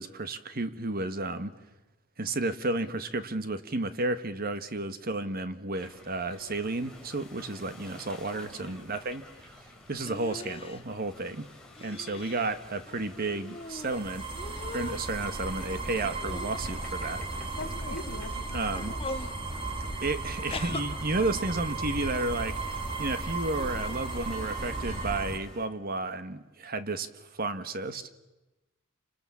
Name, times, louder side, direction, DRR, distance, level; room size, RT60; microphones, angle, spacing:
voice 1, 0.0-1.5 2.2-9.5 9.9-11.4 11.8-14.2 14.7-17.2 18.5-18.9 20.0-22.6 23.0-28.1, right 2 dB, 45° right, 11 dB, 1.4 m, -32 dB
sound 1, 5.7-25.7, left 2 dB, 5° left, 3.9 m, -51 dB
voice 2, 8.3-8.8 17.6-19.0, left 2 dB, 70° left, 7 dB, 2.9 m, -42 dB
sound 2, 10.0-10.8 11.8-12.5 12.8-13.9 14.3-15.1 15.8-16.9 17.6-18.0 18.7-19.4 20.5-20.8, left 2 dB, 25° left, 1.3 m, -41 dB
sound 3, 13.6-25.4, right 2 dB, 25° right, 1.5 m, -35 dB
29.5 x 26.0 x 7.2 m, 1.1 s
head